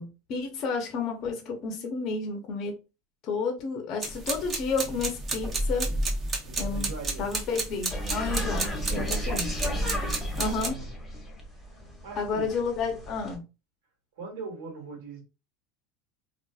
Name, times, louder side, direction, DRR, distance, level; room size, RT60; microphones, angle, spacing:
voice 1, 0.0-2.7 3.2-5.9 6.6-6.9 7.2-9.7 10.4-10.8 12.2-13.4, left 4 dB, 45° left, 0.6 m, -31 dB
sound 1, 4.0-10.7, right 2 dB, 25° right, 0.7 m, -32 dB
voice 2, 6.4-7.3 9.0-9.2 10.3-10.9 11.7-12.6 14.2-15.2, right 4 dB, 85° right, 1.5 m, -42 dB
sound 2, 7.9-13.4, equal, 5° left, 0.8 m, -34 dB
2.6 x 2.4 x 2.3 m
supercardioid pair, 130°, 0 cm